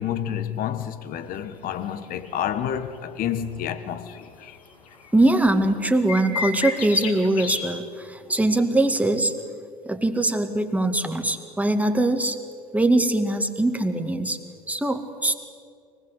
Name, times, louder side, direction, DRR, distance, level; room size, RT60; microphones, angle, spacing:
voice 1, 0.0-4.6, left 9 dB, 50° left, 1.5 m, -29 dB
sound 1, 2.2-2.4 2.9-3.0 4.1-4.2 4.5-4.6 4.9-5.3 6.1-7.7 8.4-8.6, left 6 dB, 80° left, 2.5 m, -30 dB
voice 2, 5.1-9.4 9.9-12.4 12.7-14.4 14.7-15.4, right 2 dB, 10° right, 2.2 m, -22 dB
24.0 x 20.0 x 8.4 m
hypercardioid pair, 70°, 19 cm